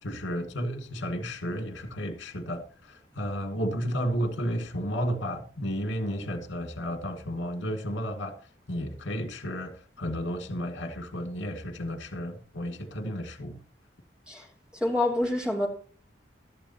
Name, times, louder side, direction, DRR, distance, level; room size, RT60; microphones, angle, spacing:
voice 1, 0.0-8.4 8.7-13.6, equal, 90° left, 2.3 m, -32 dB
voice 2, 14.8-15.7, left 1 dB, 5° right, 2.9 m, -26 dB
16.0 x 12.5 x 2.9 m
head